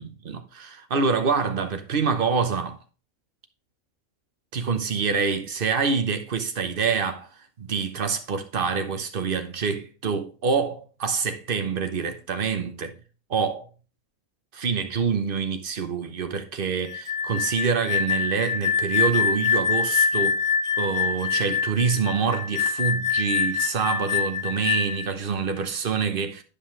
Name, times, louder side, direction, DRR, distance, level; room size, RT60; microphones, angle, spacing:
voice 1, 0.0-2.8 4.5-12.9 13.3-13.7 14.5-20.4 20.8-26.4, right 5 dB, 45° right, 1.0 m, -26 dB
sound 1, 16.9-25.1, left 6 dB, 70° left, 1.0 m, -25 dB
10.0 x 5.4 x 3.2 m
omnidirectional pair, 1.5 m